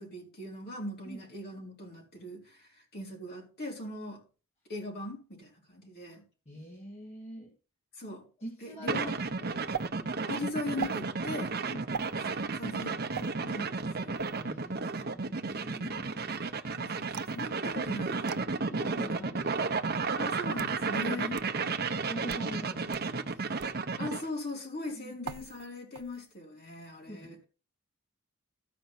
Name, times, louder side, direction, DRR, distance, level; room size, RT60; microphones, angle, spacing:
voice 1, 0.0-4.2 4.7-6.2 8.0-8.3 8.6-9.2 10.3-11.5 12.3-14.2 16.7-18.4 20.2-21.4 24.0-27.4, left 2 dB, 45° left, 4.8 m, -40 dB
voice 2, 6.5-7.5 8.4-9.6 11.6-11.8 12.6-13.1 14.4-16.2 18.7-19.7 20.9-23.5 25.0-25.1 27.1-27.3, right 1 dB, 30° left, 2.1 m, -45 dB
sound 1, 8.9-24.3, right 4 dB, 45° right, 0.8 m, -33 dB
sound 2, 9.7-9.9 10.8-11.0 11.9-12.1 13.1-13.3 14.2-14.4 17.1-17.4 18.3-18.4 19.4-19.5 20.3-20.8 21.4-21.5 22.2-22.5 22.9-23.0 23.6-23.8 25.2-25.7 25.9-26.4, right 7 dB, 80° right, 0.6 m, -39 dB
13.5 x 5.3 x 5.9 m
head